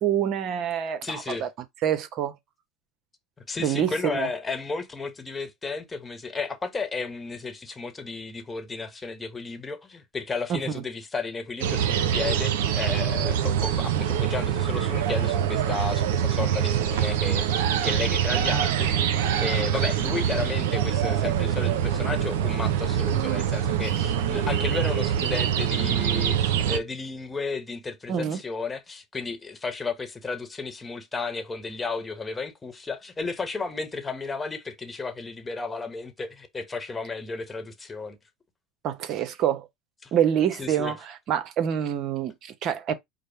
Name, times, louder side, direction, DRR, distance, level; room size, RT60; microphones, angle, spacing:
voice 1, 0.0-1.5 1.8-2.3 3.6-4.3 10.5-10.8 28.1-28.4 38.8-39.7 40.1-42.9, right 9 dB, 50° right, 0.9 m, -26 dB
voice 2, 1.0-1.5 3.4-38.2 40.0-40.1 40.6-40.9, left 4 dB, 20° left, 1.1 m, -33 dB
sound 1, 11.6-26.8, right 9 dB, 75° right, 0.6 m, -24 dB
5.1 x 2.1 x 4.5 m
hypercardioid pair, 85°, 0 cm